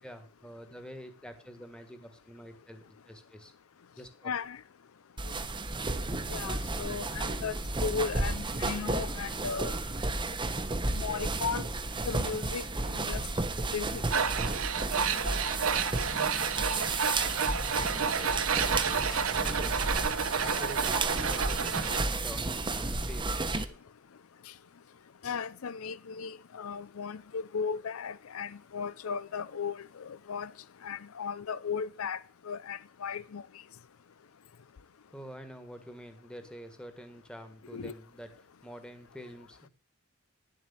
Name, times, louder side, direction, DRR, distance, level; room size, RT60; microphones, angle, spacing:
voice 1, 0.0-3.5 4.0-4.3 19.5-19.9 20.4-23.3 35.1-38.3 38.6-39.7, equal, 5° left, 1.6 m, -47 dB
voice 2, 4.2-4.6 5.2-5.3 6.3-9.7 10.9-11.7 12.1-12.6 12.9-13.4 13.7-14.0 19.1-19.2 25.2-30.5 30.8-32.2 32.4-33.4 37.7-37.9, left 5 dB, 80° left, 0.5 m, -36 dB
sound 1, 5.2-23.7, right 2 dB, 25° right, 1.0 m, -32 dB
Tools, 14.1-22.0, right 6 dB, 85° right, 1.0 m, -30 dB
10.5 x 7.7 x 7.2 m
head